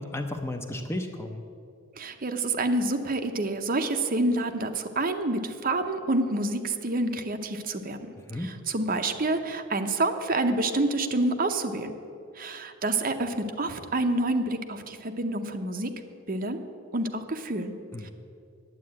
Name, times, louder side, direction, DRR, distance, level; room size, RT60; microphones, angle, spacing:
voice 1, 0.0-1.4 8.3-8.5 17.9-18.1, left 1 dB, 10° left, 5 dB, 0.6 m, -33 dB
voice 2, 2.0-8.0 8.3-11.9 12.3-15.9 16.3-16.6 16.9-17.7 18.0-18.1, right 2 dB, 45° right, 6 dB, 0.8 m, -28 dB
9.4 x 8.6 x 8.6 m, 2.4 s
head